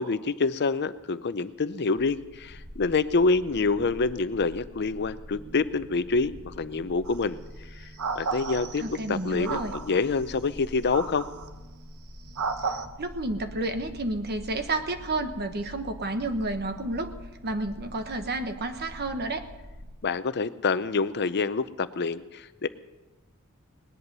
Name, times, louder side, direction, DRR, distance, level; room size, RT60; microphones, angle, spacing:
voice 1, 0.0-7.4 8.2-8.8 9.1-11.3 20.0-22.7, left 4 dB, 50° left, 13 dB, 0.6 m, -27 dB
sound 1, 2.0-19.9, equal, 20° right, 1.1 m, -45 dB
sound 2, 7.1-7.2 8.0-9.0 9.4-10.0 10.9-11.5 12.4-12.9, right 5 dB, 75° right, 1.0 m, -32 dB
voice 2, 8.8-9.7 13.0-17.1 17.4-19.5, right 2 dB, 45° right, 7 dB, 1.2 m, -30 dB
19.0 x 11.0 x 5.5 m, 1.1 s
head